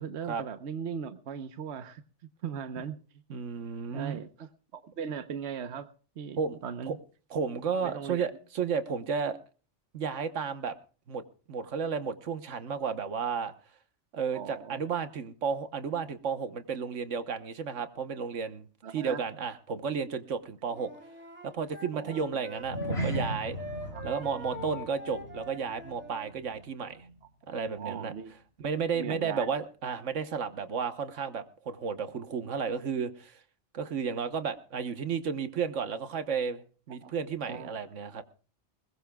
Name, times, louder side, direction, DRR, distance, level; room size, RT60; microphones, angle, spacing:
voice 1, 0.0-2.0 2.4-3.0 3.9-4.5 4.7-5.9 6.2-7.0 7.8-8.3 14.3-14.9 18.8-19.2 21.9-22.3 23.9-24.0 27.8-28.3 28.9-29.5 37.0-37.1 37.5-37.8, right 7 dB, 70° right, 1.2 m, -38 dB
voice 2, 3.3-4.2 6.4-6.6 6.9-7.0 7.3-9.4 9.9-10.7 11.1-11.2 11.5-13.5 14.1-18.7 18.9-20.9 21.4-23.6 24.0-27.1 27.5-28.1 28.6-33.4 33.7-38.2, right 6 dB, 85° right, 1.4 m, -33 dB
Wind instrument woodwind instrument, 20.7-23.3 23.5-26.3, left 1 dB, 10° right, 2.6 m, -43 dB
sound 1, 22.6-27.2 27.5-27.8 28.2-28.3, equal, 60° left, 4.1 m, -37 dB
21.0 x 21.0 x 2.3 m
omnidirectional pair, 1.2 m